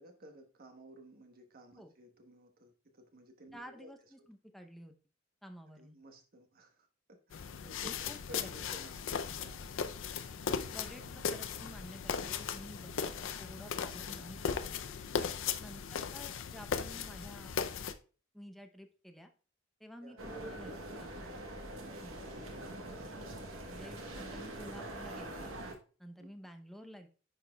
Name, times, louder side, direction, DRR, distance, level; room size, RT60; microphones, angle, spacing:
voice 1, 0.0-3.9 5.8-9.7 10.6-11.2 12.9-13.0 15.4-15.6 20.0-21.1 22.3-22.6 26.2-26.3, right 1 dB, 50° right, 5 dB, 1.1 m, -54 dB
voice 2, 3.5-4.9 5.4-6.0 7.8-8.5 10.7-14.7 15.2-15.3 15.6-17.6 18.3-19.3 19.8-20.7 21.0-21.3 22.0-22.2 23.7-25.5 26.0-27.1, equal, ahead, 5 dB, 0.6 m, -51 dB
sound 1, 7.3-17.9, left 6 dB, 65° left, 0.5 m, -38 dB
sound 2, 20.2-25.7, right 1 dB, 75° right, 1.1 m, -44 dB
10.5 x 4.2 x 2.2 m, 0.38 s
head